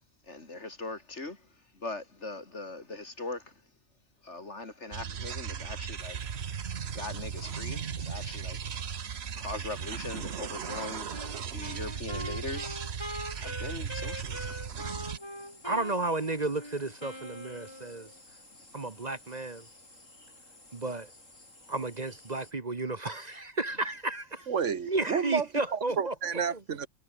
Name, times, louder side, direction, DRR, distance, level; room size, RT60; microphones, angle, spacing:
voice 1, 0.3-3.6 4.2-6.3 6.9-8.6 9.4-12.9 13.3-14.6, left 2 dB, 65° left, 3.9 m, -41 dB
sound 1, 4.9-15.2, right 7 dB, 55° right, 1.3 m, -37 dB
sound 2, 6.0-22.5, left 2 dB, 90° left, 7.4 m, -55 dB
Wind instrument woodwind instrument, 10.7-18.2, equal, 20° left, 8.0 m, -42 dB
voice 2, 15.6-18.1 18.7-19.7 20.7-21.1 21.7-24.5 24.9-26.1 26.5-26.6, right 2 dB, 35° right, 1.4 m, -33 dB
voice 3, 24.5-25.5 25.7-26.9, right 6 dB, 75° right, 1.6 m, -30 dB
omnidirectional pair, 1.3 m